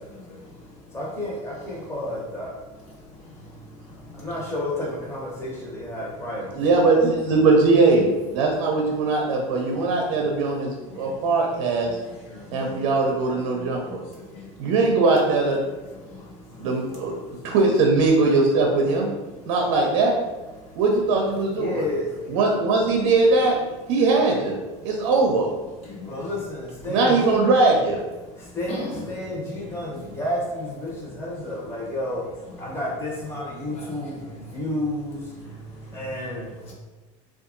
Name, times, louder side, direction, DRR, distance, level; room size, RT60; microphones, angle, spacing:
voice 1, 0.9-2.5 4.2-6.9 21.6-22.0 26.0-27.4 28.4-28.8 29.1-32.2 32.6-35.2 35.9-36.4, left 1 dB, 15° left, -5 dB, 0.8 m, -31 dB
voice 2, 6.5-11.9 12.5-14.0 14.6-15.6 16.6-17.1 17.4-19.1 19.5-20.2 20.8-21.9 22.3-23.6 23.9-24.6 24.8-25.5 26.9-28.0, right 3 dB, 75° right, 1 dB, 0.5 m, -20 dB
voice 3, 12.2-13.0 13.5-14.5 16.1-16.7 25.8-26.3 28.2-28.3 28.7-29.8 33.6-34.5 35.8-36.1 36.5-36.7, left 1 dB, 40° left, -4 dB, 1.0 m, -40 dB
2.7 x 2.3 x 2.5 m, 1.2 s
supercardioid pair, 110°, 16 cm